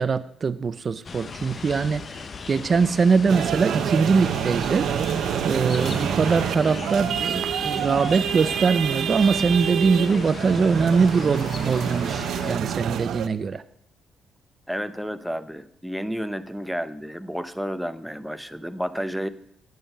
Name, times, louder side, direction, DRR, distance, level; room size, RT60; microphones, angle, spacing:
voice 1, 0.0-4.9 5.4-13.6, right 5 dB, 40° right, 14 dB, 0.5 m, -22 dB
sound 1, 1.0-12.6, left 5 dB, 40° left, 0.7 m, -37 dB
sound 2, 3.3-13.3, right 9 dB, 75° right, 0.7 m, -27 dB
voice 2, 14.7-19.3, equal, ahead, 11 dB, 0.7 m, -31 dB
9.1 x 8.4 x 7.2 m, 0.74 s
cardioid pair, 90°, 0 cm